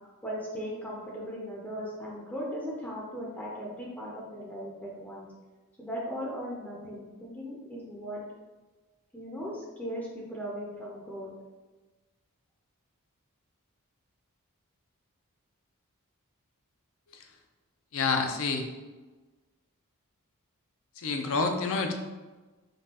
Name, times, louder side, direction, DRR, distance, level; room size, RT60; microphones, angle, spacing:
voice 1, 0.2-5.3 5.8-8.2 9.1-11.3, equal, 5° left, -4 dB, 0.5 m, -38 dB
voice 2, 17.9-18.7 21.0-21.9, left 4 dB, 65° left, 4 dB, 0.5 m, -28 dB
5.2 x 2.3 x 2.8 m, 1.2 s
head